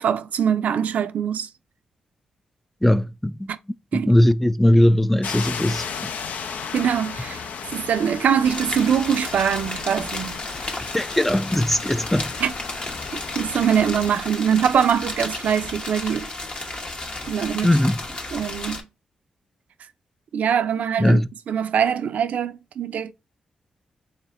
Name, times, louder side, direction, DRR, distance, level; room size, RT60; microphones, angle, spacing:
voice 1, 0.0-1.5 3.5-3.6 3.9-4.1 6.7-10.4 12.4-12.5 13.4-16.3 17.3-17.7 18.3-18.8 20.3-21.2 21.5-23.1, right 8 dB, 75° right, 0.4 m, -23 dB
voice 2, 2.8-3.5 3.9-5.8 10.9-12.3 17.6-18.0 21.0-21.3, left 1 dB, 5° left, 0.3 m, -19 dB
sound 1, 5.2-14.2, left 6 dB, 75° left, 0.4 m, -35 dB
sound 2, 8.4-18.8, left 2 dB, 40° left, 1.0 m, -33 dB
4.2 x 3.3 x 2.5 m
cardioid pair, 60°, 3 cm